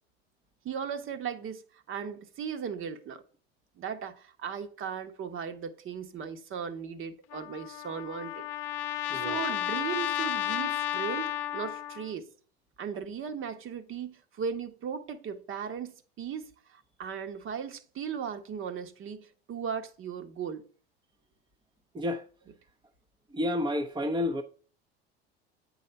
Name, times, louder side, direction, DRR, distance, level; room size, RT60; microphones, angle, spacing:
voice 1, 0.6-3.2 3.8-8.5 9.1-12.3 12.8-20.6, right 7 dB, 40° right, 1.3 m, -37 dB
Trumpet, 7.3-12.1, left 12 dB, 55° left, 0.7 m, -33 dB
voice 2, 9.1-9.4 21.9-22.2 23.3-24.4, left 1 dB, 15° right, 0.9 m, -30 dB
8.4 x 4.1 x 5.7 m
hypercardioid pair, 75°, 32 cm